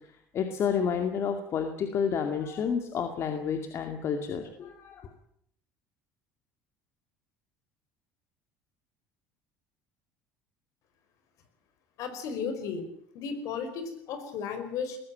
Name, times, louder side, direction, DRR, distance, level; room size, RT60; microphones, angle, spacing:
voice 1, 0.3-5.1, left 7 dB, 50° left, 6 dB, 2.3 m, -30 dB
voice 2, 12.0-12.8 13.1-15.0, left 6 dB, 65° left, 9 dB, 4.9 m, -34 dB
20.5 x 15.5 x 8.8 m, 0.72 s
supercardioid pair, 105°, 6 cm